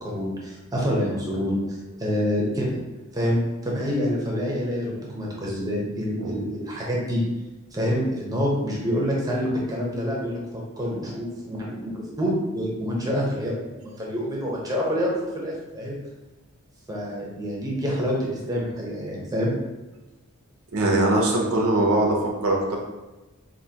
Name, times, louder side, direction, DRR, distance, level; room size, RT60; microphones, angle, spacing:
voice 1, 0.0-2.8 3.1-7.2 7.7-15.1 15.3-16.0 16.9-19.5, equal, 15° right, -4 dB, 0.9 m, -27 dB
voice 2, 20.7-22.8, right 1 dB, 70° right, -1 dB, 0.7 m, -22 dB
5.4 x 2.8 x 2.8 m, 1.1 s
head